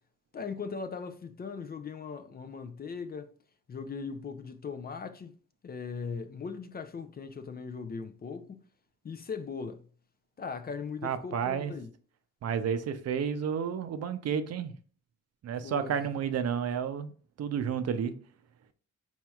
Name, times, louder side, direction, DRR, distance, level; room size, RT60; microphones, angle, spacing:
voice 1, 0.3-3.3 3.7-5.3 5.6-8.6 9.0-9.8 10.4-11.9 15.6-15.9, left 5 dB, 30° left, 0.5 m, -39 dB
voice 2, 11.0-11.7 12.4-14.7 15.4-17.1 17.4-18.1, right 7 dB, 55° right, 0.6 m, -31 dB
4.5 x 4.2 x 2.3 m
cardioid pair, 90°, 30 cm